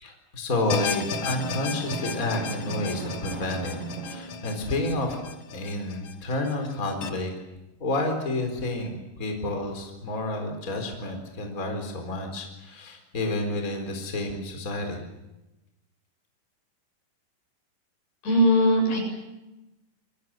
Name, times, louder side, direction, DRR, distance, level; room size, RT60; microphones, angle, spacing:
voice 1, 0.0-5.2 5.5-7.3 7.8-15.1, left 2 dB, 20° left, 4 dB, 4.3 m, -30 dB
sound 1, 0.7-7.1, left 7 dB, 55° left, 1.8 m, -35 dB
Drum, 1.1-4.9, right 5 dB, 60° right, 4.3 m, -38 dB
voice 2, 18.2-19.0, equal, 75° left, 2 dB, 9.6 m, -19 dB
28.0 x 22.5 x 7.7 m, 0.99 s
omnidirectional pair, 4.7 m